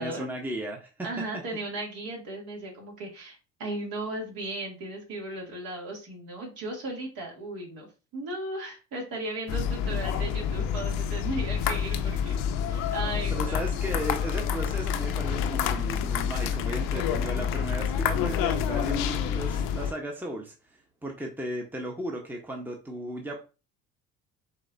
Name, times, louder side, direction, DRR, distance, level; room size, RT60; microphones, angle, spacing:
voice 1, 0.0-0.9 13.3-20.5 21.0-23.4, right 1 dB, 5° right, 1 dB, 1.0 m, -35 dB
voice 2, 1.0-7.9 8.1-12.4 12.7-13.9, right 2 dB, 55° right, -1 dB, 2.5 m, -36 dB
sound 1, 9.5-19.9, left 8 dB, 55° left, 0.8 m, -28 dB
sound 2, 12.5-20.0, left 12 dB, 35° left, 0.4 m, -41 dB
5.1 x 3.5 x 2.6 m, 0.32 s
hypercardioid pair, 65°, 41 cm